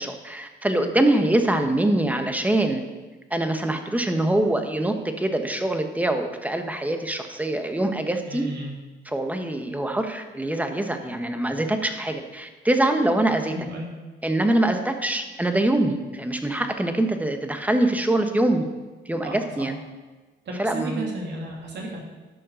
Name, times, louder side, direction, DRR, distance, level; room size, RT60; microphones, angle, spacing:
voice 1, 0.0-2.8 3.3-8.4 9.0-13.5 14.2-18.7 19.0-19.8 20.6-21.0, right 1 dB, 5° right, 6 dB, 1.2 m, -24 dB
voice 2, 8.2-8.7 13.5-13.9 19.2-19.7 20.4-22.0, right 1 dB, 60° right, -2 dB, 2.8 m, -33 dB
12.0 x 5.6 x 6.4 m, 1.3 s
cardioid pair, 90°, 20 cm